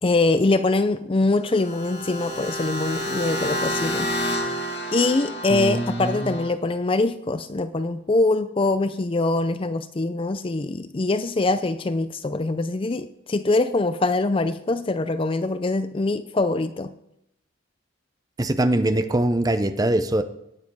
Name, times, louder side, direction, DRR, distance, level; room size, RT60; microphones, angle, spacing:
voice 1, 0.0-4.1 4.9-16.9, left 2 dB, 25° left, 12 dB, 0.4 m, -23 dB
sound 1, 1.4-6.5, equal, 50° left, 2.0 m, -29 dB
voice 2, 5.5-6.4 18.4-20.2, right 1 dB, 20° right, 10 dB, 0.7 m, -22 dB
17.5 x 9.4 x 4.7 m, 0.82 s
head